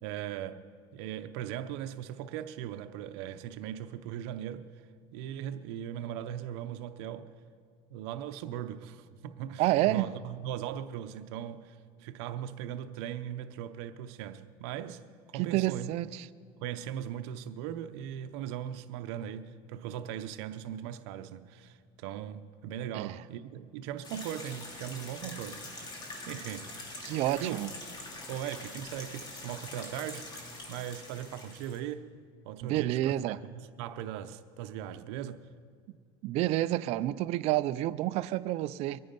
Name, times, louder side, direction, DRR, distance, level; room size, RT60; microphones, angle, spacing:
voice 1, 0.0-0.6 0.9-4.7 5.1-7.3 7.9-15.0 15.3-15.9 16.6-26.0 26.3-26.7 27.4-27.6 28.3-30.3 30.7-32.1 32.4-35.4, right 10 dB, 85° right, 0.7 m, -39 dB
voice 2, 9.6-10.1 15.3-16.3 22.9-23.1 27.0-27.7 32.6-33.4 36.2-39.0, right 15 dB, 50° right, 0.4 m, -29 dB
sound 1, 24.0-31.8, left 2 dB, 30° left, 2.7 m, -44 dB
23.0 x 9.4 x 5.3 m
cardioid pair, 140°, 13 cm